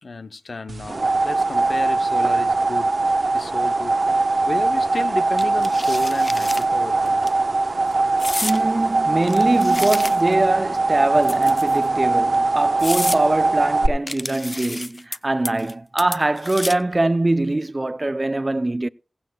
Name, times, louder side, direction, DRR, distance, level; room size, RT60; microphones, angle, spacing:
voice 1, 0.0-2.9 3.3-4.0 4.5-7.2, left 3 dB, 65° left, 0.9 m, -32 dB
sound 1, 0.7-13.9, right 3 dB, 60° right, 1.0 m, -21 dB
sound 2, 5.4-6.6 7.1-7.3 8.2-8.6 9.2-10.4 11.2-11.8 12.3-12.4 12.8-13.2 14.1-15.2 15.4-15.7 16.0-16.9, left 2 dB, 35° left, 0.5 m, -30 dB
voice 2, 8.4-18.9, right 2 dB, 35° right, 0.5 m, -22 dB
16.0 x 15.5 x 2.3 m
cardioid pair, 45°, 0 cm